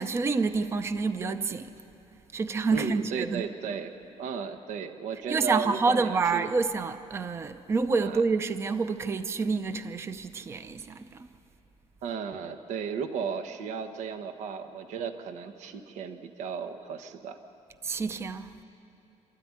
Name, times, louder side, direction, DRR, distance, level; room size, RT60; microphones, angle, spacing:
voice 1, 0.0-1.7 2.3-3.4 5.3-11.3 17.8-18.6, right 4 dB, 20° right, 10 dB, 0.6 m, -28 dB
voice 2, 2.7-3.9 4.2-6.5 8.0-8.2 12.0-17.4, right 6 dB, 80° right, 7 dB, 1.3 m, -35 dB
27.0 x 13.5 x 9.7 m, 2.8 s
cardioid pair, 175°, 12 cm